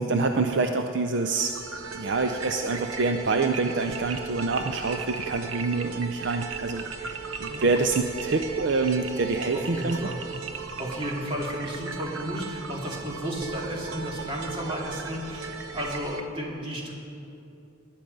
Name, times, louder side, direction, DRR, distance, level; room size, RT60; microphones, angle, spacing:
voice 1, 0.0-1.5 1.9-10.0, right 3 dB, 55° right, 5 dB, 0.5 m, -26 dB
sound 1, 1.1-16.2, right 5 dB, 85° right, 1.0 m, -37 dB
voice 2, 9.5-10.2 10.8-16.9, equal, 25° right, -3 dB, 2.4 m, -33 dB
19.0 x 10.0 x 5.3 m, 2.8 s
head